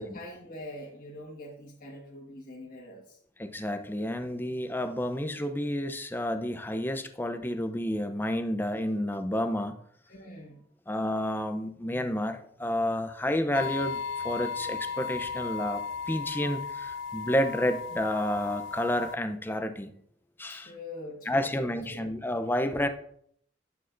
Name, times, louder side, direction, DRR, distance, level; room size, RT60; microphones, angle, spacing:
voice 1, 0.0-3.2 10.1-10.6 20.5-22.1, left 1 dB, 50° left, -4 dB, 1.5 m, -44 dB
voice 2, 3.4-9.8 10.9-19.9 20.4-20.7 21.3-22.9, left 1 dB, 10° left, 8 dB, 0.6 m, -30 dB
sound 1, 13.5-19.2, left 5 dB, 85° left, 0.3 m, -36 dB
11.0 x 8.7 x 2.6 m, 0.66 s
head